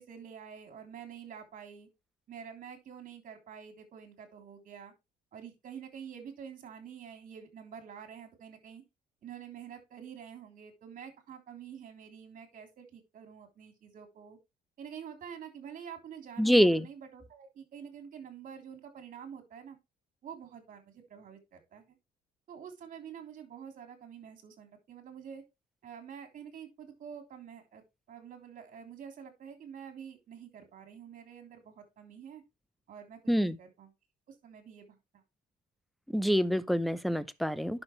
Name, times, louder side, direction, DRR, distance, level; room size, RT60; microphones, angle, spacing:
voice 1, 0.0-1.9 2.3-4.9 5.3-8.8 9.2-14.4 14.8-19.8 20.2-22.0 22.5-25.4 25.8-27.8 28.1-32.4 32.9-33.9 34.3-35.0, right 8 dB, 50° right, 3.4 m, -47 dB
voice 2, 16.4-16.9 33.3-33.6 36.1-37.8, equal, ahead, 0.7 m, -26 dB
10.5 x 6.4 x 3.2 m
cardioid pair, 110°, 17 cm